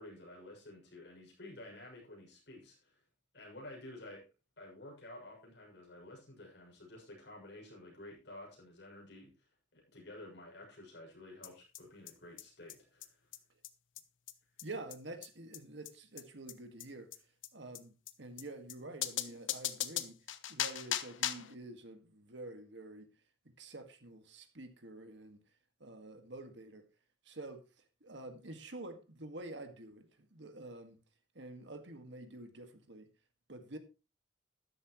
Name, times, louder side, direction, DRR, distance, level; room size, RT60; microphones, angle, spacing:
voice 1, 0.0-3.0 3.3-4.2 4.6-13.3, left 1 dB, 60° left, 6.7 m, -52 dB
sound 1, 11.4-11.5 11.7-11.8 12.1-12.2 12.4-12.5 12.7-12.8 13.0-13.1 13.3-13.4 13.6-13.7 14.0-14.1 14.3-14.4 14.6-14.7 14.9-15.0 15.2-15.3 15.5-15.6 15.9-16.0 16.2-16.3 16.5-16.6 16.8-16.9 17.1-17.2 17.4-17.5 17.7-17.8 18.1-18.2 18.4-18.5 18.7-18.8 19.0-21.5, left 11 dB, 75° left, 1.0 m, -38 dB
voice 2, 14.6-17.1 17.5-17.9 18.2-20.2 20.5-23.1 23.6-25.4 25.8-26.8 27.2-27.6 28.0-31.0 31.4-33.1 33.5-33.8, right 2 dB, 65° right, 1.9 m, -48 dB
13.0 x 11.5 x 3.1 m
head